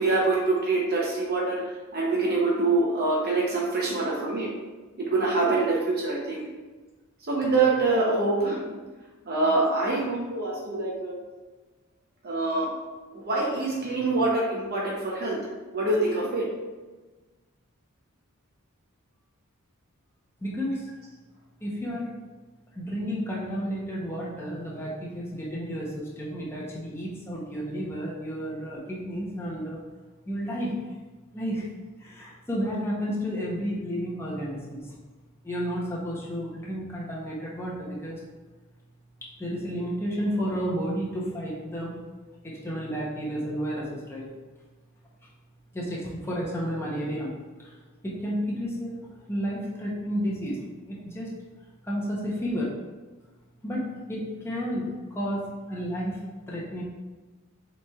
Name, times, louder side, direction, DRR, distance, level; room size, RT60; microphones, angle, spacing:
voice 1, 0.0-1.6 1.9-4.5 5.0-6.4 7.3-8.8 9.3-11.1 12.2-12.7 13.1-15.4 15.7-16.4, right 3 dB, 45° right, -4 dB, 0.8 m, -25 dB
voice 2, 20.4-20.9 21.6-22.1 22.8-29.8 30.2-30.7 31.3-31.7 32.0-34.9 35.4-38.2 39.2-41.9 42.4-44.3 45.7-47.7 48.0-48.9 49.3-51.3 51.8-52.7 53.6-56.8, equal, 10° left, -5 dB, 0.7 m, -32 dB
7.1 x 3.1 x 2.3 m, 1.3 s
head